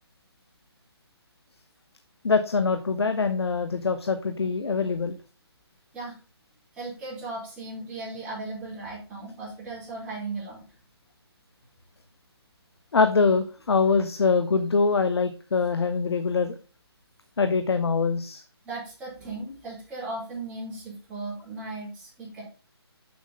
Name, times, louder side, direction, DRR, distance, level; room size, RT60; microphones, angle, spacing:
voice 1, 2.2-5.2 12.9-16.6 17.4-18.4, left 4 dB, 70° left, 8 dB, 0.9 m, -24 dB
voice 2, 6.7-10.6 18.6-22.4, right 2 dB, 10° right, -8 dB, 4.8 m, -37 dB
7.0 x 6.5 x 3.9 m, 0.35 s
hypercardioid pair, 155°, 14 cm